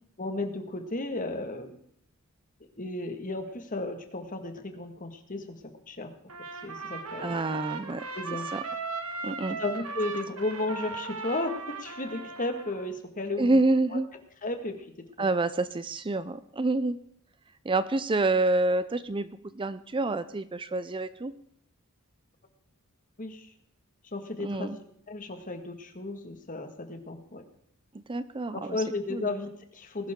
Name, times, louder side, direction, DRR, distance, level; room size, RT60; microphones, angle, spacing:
voice 1, 0.2-1.8 2.8-5.6 5.9-6.1 6.6-7.4 8.2-8.5 9.5-13.6 13.9-14.0 14.4-14.9 23.2-23.5 24.1-24.8 25.1-27.4 28.5-30.1, left 2 dB, 40° left, 6 dB, 1.8 m, -34 dB
Trumpet, 6.3-12.9, right 4 dB, 85° right, 2.0 m, -37 dB
voice 2, 7.2-8.0 8.5-8.6 9.2-9.6 13.4-14.1 15.2-17.0 17.6-21.3 24.4-24.8 28.1-28.6 29.1-29.3, right 2 dB, 25° right, 13 dB, 0.5 m, -27 dB
20.5 x 11.5 x 3.7 m, 0.68 s
head